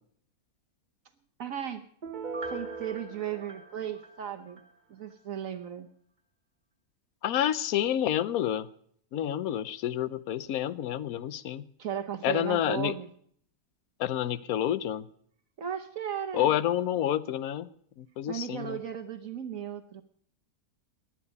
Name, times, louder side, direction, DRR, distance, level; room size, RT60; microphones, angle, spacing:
voice 1, 1.4-1.8 2.4-4.6 4.9-5.9 11.8-13.1 15.6-16.5 18.3-20.0, right 9 dB, 65° right, 8 dB, 1.4 m, -36 dB
Piano, 2.0-4.7 5.1-5.2, right 3 dB, 30° right, 1.3 m, -40 dB
voice 2, 7.2-8.7 9.1-11.7 12.2-12.9 14.0-15.1 16.3-17.7 18.0-18.8, left 11 dB, 70° left, 16 dB, 1.2 m, -29 dB
19.0 x 11.0 x 5.3 m, 0.62 s
omnidirectional pair, 1.6 m